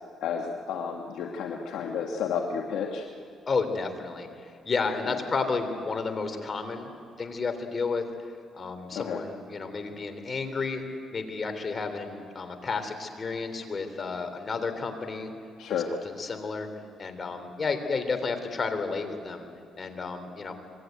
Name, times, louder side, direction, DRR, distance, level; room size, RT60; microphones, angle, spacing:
voice 1, 0.2-3.0 5.1-5.2 8.9-9.2 15.6-15.9, left 7 dB, 80° left, 1 dB, 1.6 m, -31 dB
voice 2, 3.5-6.9 7.2-8.0 8.5-10.8 11.1-15.3 16.0-16.7 17.0-19.4 19.8-20.5, left 4 dB, 40° left, 7 dB, 3.2 m, -31 dB
25.0 x 21.0 x 9.3 m, 2.4 s
cardioid pair, 90°, 0 cm